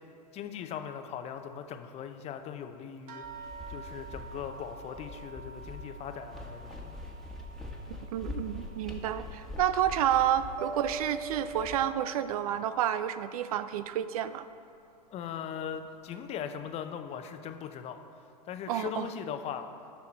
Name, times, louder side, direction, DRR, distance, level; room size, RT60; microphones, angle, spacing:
voice 1, 0.3-3.2 3.7-7.0 15.1-18.0 18.4-19.7, left 8 dB, 30° left, 7 dB, 0.7 m, -39 dB
sound 1, 3.1-11.9 12.2-13.1 13.8-13.9 14.4-14.5, right 5 dB, 40° right, 1.2 m, -51 dB
sound 2, 3.2-11.8, left 2 dB, ahead, 1.4 m, -44 dB
voice 2, 7.9-14.5 18.7-19.1, right 10 dB, 60° right, 13 dB, 0.5 m, -30 dB
Mallet percussion, 10.6-12.6, right 3 dB, 75° right, 1.2 m, -41 dB
14.0 x 5.9 x 4.5 m, 2.5 s
hypercardioid pair, 105°, 21 cm